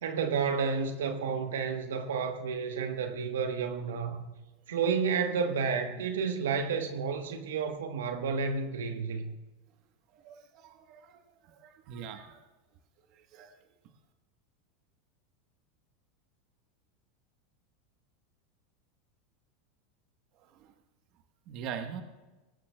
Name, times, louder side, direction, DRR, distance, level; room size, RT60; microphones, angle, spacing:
voice 1, 0.0-4.2 4.7-9.3, right 5 dB, 85° right, 1.2 m, -31 dB
voice 2, 10.2-11.2 11.6-12.4 13.3-13.5 21.5-22.0, right 7 dB, 55° right, 1.2 m, -42 dB
19.5 x 16.0 x 2.3 m
hypercardioid pair, 110°, 0 cm